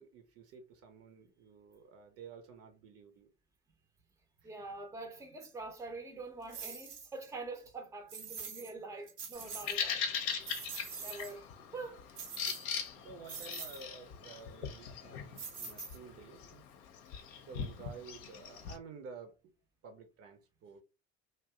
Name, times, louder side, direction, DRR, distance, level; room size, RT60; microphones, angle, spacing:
voice 1, 0.0-3.3 4.4-4.5 12.7-16.7 17.4-19.4 19.8-20.8, right 5 dB, 45° right, 0.8 m, -52 dB
voice 2, 4.4-10.1 11.0-12.1 12.5-12.6 13.0-13.1, right 3 dB, 10° right, 0.7 m, -45 dB
sound 1, 6.5-7.0 8.1-8.7 9.1-9.8 10.2-11.4 12.2-12.9 13.3-13.8 15.4-16.2, right 6 dB, 75° right, 1.0 m, -44 dB
Bird vocalization bird call bird song, 9.4-18.8, left 7 dB, 55° left, 0.7 m, -41 dB
2.7 x 2.2 x 3.6 m
figure-of-eight pair, 65°, 35 cm